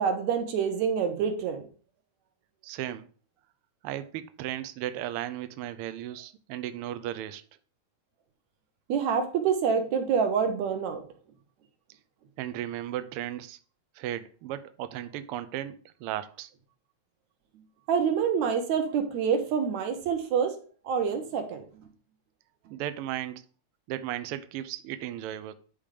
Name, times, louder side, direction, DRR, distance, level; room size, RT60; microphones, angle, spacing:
voice 1, 0.0-1.7 8.9-11.0 17.9-20.6 20.8-21.6, right 6 dB, 75° right, 2.5 m, -27 dB
voice 2, 2.6-3.1 3.8-7.4 12.4-13.6 13.9-16.5 22.7-23.4 23.9-25.5, right 12 dB, 90° right, 1.2 m, -35 dB
10.0 x 3.7 x 4.9 m
omnidirectional pair, 3.3 m